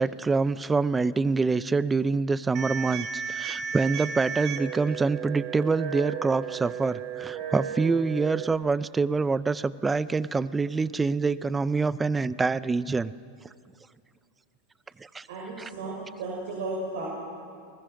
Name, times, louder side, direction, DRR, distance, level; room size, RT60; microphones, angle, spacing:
voice 1, 0.0-13.1 15.0-15.3 15.6-15.7, right 4 dB, 10° right, 17 dB, 0.4 m, -26 dB
sound 1, 2.5-8.5, right 7 dB, 40° right, 1.6 m, -34 dB
voice 2, 15.3-17.1, right 2 dB, 70° right, -4 dB, 6.2 m, -34 dB
29.5 x 20.5 x 5.9 m, 2.3 s
supercardioid pair, 150°, 0 cm